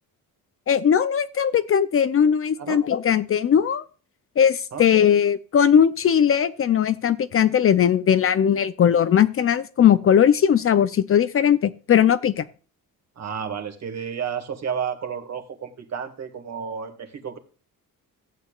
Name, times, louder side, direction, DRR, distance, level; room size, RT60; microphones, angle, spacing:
voice 1, 0.7-3.8 4.4-12.4, left 8 dB, 40° left, 14 dB, 0.5 m, -19 dB
voice 2, 13.2-17.4, right 7 dB, 50° right, 6 dB, 1.9 m, -31 dB
15.0 x 8.5 x 2.4 m, 0.37 s
cardioid pair, 140°, 35 cm